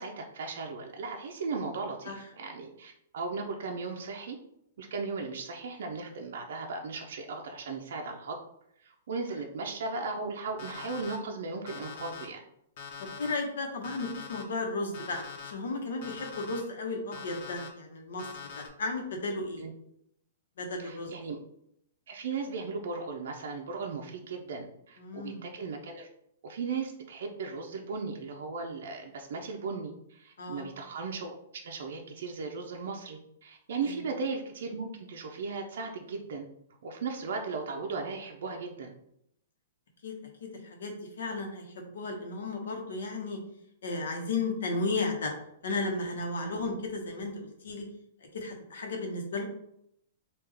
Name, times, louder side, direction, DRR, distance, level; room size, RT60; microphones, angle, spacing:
voice 1, 0.0-4.4 4.8-8.4 8.8-12.4 19.6-19.7 20.8-21.4 22.1-26.1 26.4-31.3 31.6-36.5 36.8-38.9 46.4-46.6, right 4 dB, 55° right, 1 dB, 0.5 m, -37 dB
Alarm, 10.6-11.2 11.7-12.3 12.8-13.3 13.8-14.4 14.9-15.5 16.0-16.6 17.1-17.7 18.2-18.7, left 7 dB, 40° left, 0.6 m, -43 dB
voice 2, 13.0-19.6 20.6-21.1 25.0-25.4 30.4-30.7 33.8-34.0 40.0-40.1 40.4-43.4 43.8-45.3 45.6-47.8 48.3-49.4, left 3 dB, 70° left, 2 dB, 0.9 m, -34 dB
3.5 x 2.4 x 3.4 m, 0.75 s
hypercardioid pair, 175°, 0 cm